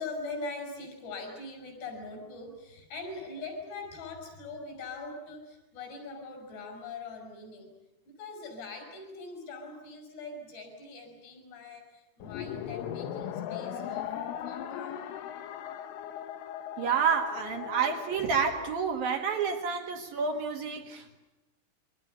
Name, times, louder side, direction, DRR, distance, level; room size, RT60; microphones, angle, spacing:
voice 1, 0.0-7.8 8.1-14.1 14.4-15.1 21.0-21.2, left 3 dB, 55° left, 7.7 m, -42 dB
sound 1, 12.2-18.7, left 10 dB, 85° left, 4.0 m, -38 dB
voice 2, 16.8-21.2, right 6 dB, 60° right, 2.8 m, -29 dB
28.0 x 24.5 x 6.7 m
omnidirectional pair, 5.7 m